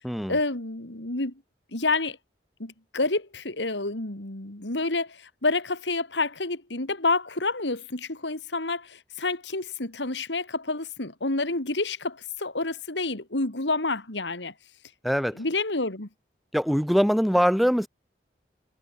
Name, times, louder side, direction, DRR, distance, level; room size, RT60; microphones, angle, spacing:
voice 1, 0.3-1.3 1.7-2.2 2.6-14.5 15.3-16.1, left 3 dB, 85° left, 3.1 m, -29 dB
voice 2, 16.5-17.9, equal, ahead, 6.7 m, -22 dB
head